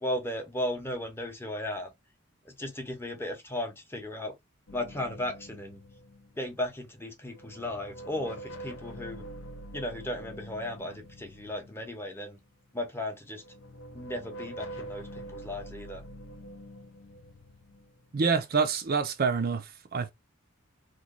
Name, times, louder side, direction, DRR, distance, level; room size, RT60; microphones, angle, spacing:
voice 1, 0.0-1.9 2.4-4.3 4.7-5.8 6.4-9.2 9.7-12.4 12.7-13.4 13.9-16.0, left 1 dB, 10° left, 0.7 m, -35 dB
sound 1, 4.7-6.9 7.3-12.4 13.3-18.8, right 1 dB, 65° left, 0.5 m, -45 dB
voice 2, 18.1-20.1, right 5 dB, 45° right, 0.4 m, -27 dB
3.0 x 2.2 x 3.7 m
head